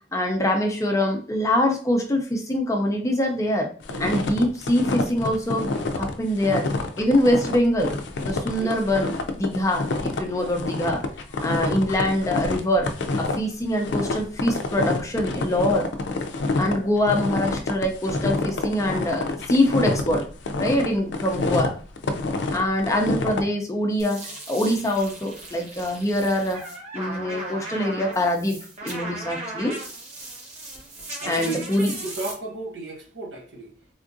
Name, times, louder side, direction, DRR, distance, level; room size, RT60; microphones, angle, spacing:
voice 1, 0.1-3.7 4.0-5.7 5.9-6.7 7.0-7.9 8.2-11.0 11.4-12.9 13.2-15.8 16.6-20.2 20.6-21.7 22.5-24.2 24.5-26.6 26.9-28.5 28.8-29.7 31.3-31.9, left 1 dB, 15° left, 0.5 m, -24 dB
sound 1, 3.8-23.4, left 3 dB, 70° left, 0.4 m, -27 dB
sound 2, 24.0-32.3, right 2 dB, 35° right, 1.1 m, -37 dB
voice 2, 31.2-31.7 32.0-33.7, right 2 dB, 75° right, 0.9 m, -35 dB
3.5 x 2.4 x 2.5 m
head